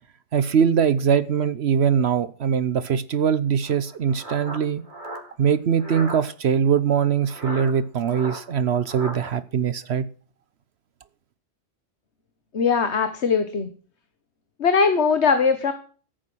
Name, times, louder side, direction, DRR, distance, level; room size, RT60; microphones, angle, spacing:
voice 1, 0.3-4.8 5.4-10.1, right 7 dB, 70° right, 1.1 m, -22 dB
sound 1, 3.6-6.2 7.3-9.3, right 1 dB, 45° right, 2.8 m, -36 dB
voice 2, 12.5-13.7 14.6-15.7, left 5 dB, 75° left, 1.6 m, -20 dB
15.0 x 8.8 x 6.2 m
omnidirectional pair, 1.1 m